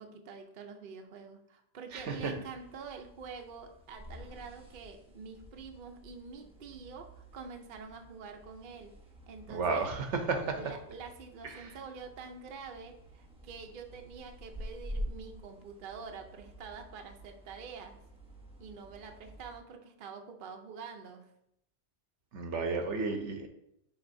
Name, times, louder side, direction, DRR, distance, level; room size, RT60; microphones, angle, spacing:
voice 1, 0.0-8.9 9.3-9.9 10.5-18.0 18.6-21.3, right 5 dB, 55° right, 4 dB, 0.8 m, -46 dB
sound 1, 1.9-19.6, equal, 5° right, 0.8 m, -48 dB
voice 2, 1.9-2.3 9.5-10.6 11.4-11.7 22.3-23.5, right 4 dB, 80° right, 5 dB, 1.2 m, -33 dB
10.0 x 3.8 x 2.6 m, 0.77 s
omnidirectional pair, 1.2 m